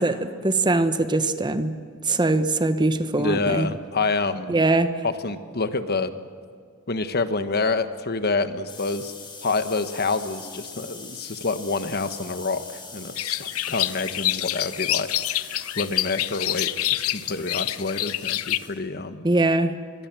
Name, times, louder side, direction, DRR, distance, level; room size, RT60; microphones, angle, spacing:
voice 1, 0.0-1.8 2.1-3.7 4.5-5.0 19.2-19.8, right 2 dB, 20° right, 10 dB, 1.1 m, -22 dB
voice 2, 3.2-4.6 5.0-6.2 6.9-9.1 9.4-19.3, left 3 dB, 45° left, 10 dB, 1.3 m, -27 dB
sound 1, 8.7-18.7, left 4 dB, 20° left, 5.4 m, -43 dB
sound 2, 13.2-18.6, left 14 dB, 80° left, 0.8 m, -27 dB
26.5 x 21.5 x 7.7 m, 2.1 s
head